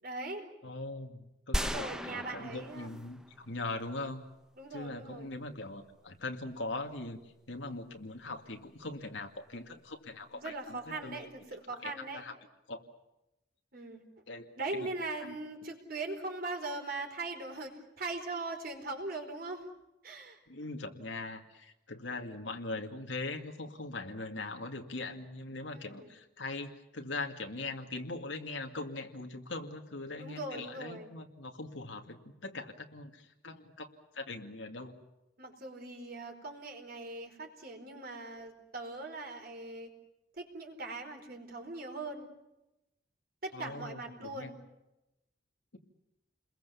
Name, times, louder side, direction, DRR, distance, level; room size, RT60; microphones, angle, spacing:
voice 1, 0.0-0.5 1.6-2.9 4.6-5.3 10.3-12.2 13.7-14.0 14.6-19.7 20.0-20.4 25.7-26.1 30.2-31.1 35.4-39.9 40.4-42.3 43.4-44.6, right 2 dB, 55° right, 3 dB, 4.5 m, -40 dB
voice 2, 0.6-4.2 4.7-7.2 7.5-11.2 11.7-12.3 12.7-12.8 14.3-14.5 14.7-14.9 15.2-15.4 20.5-33.9 34.1-34.9 43.5-44.5, left 2 dB, 90° left, 3 dB, 2.3 m, -41 dB
sound 1, 1.5-3.5 3.8-3.9, equal, 5° right, 0.9 m, -36 dB
29.5 x 22.0 x 7.1 m, 0.94 s
head